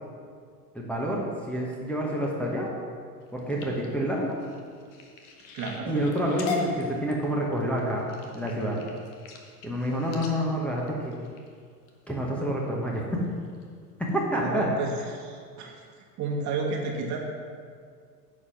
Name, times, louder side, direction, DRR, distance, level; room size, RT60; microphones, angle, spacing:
voice 1, 0.7-2.7 3.3-4.4 5.9-8.1 8.3-8.8 9.6-11.2 12.1-13.0 14.0-14.7, equal, 5° left, -4 dB, 1.3 m, -28 dB
sound 1, 3.2-11.9 12.5-12.8 13.3-13.6 14.1-14.2 14.5-14.6, left 4 dB, 40° left, 1.5 m, -39 dB
voice 2, 5.5-6.0 14.4-15.9 16.2-17.2, right 3 dB, 35° right, 0 dB, 1.6 m, -31 dB
9.8 x 5.1 x 5.8 m, 2.1 s
figure-of-eight pair, 85°, 48 cm